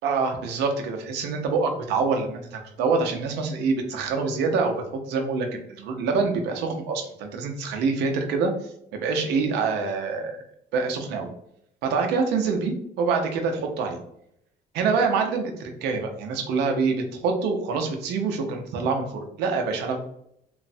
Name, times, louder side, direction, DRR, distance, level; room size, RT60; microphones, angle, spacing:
voice 1, 0.0-8.5 8.9-10.4 10.7-11.3 11.8-14.0 14.7-20.0, right 4 dB, 85° right, 3 dB, 0.6 m, -26 dB
3.0 x 2.0 x 2.6 m, 0.75 s
cardioid pair, 110°, 17 cm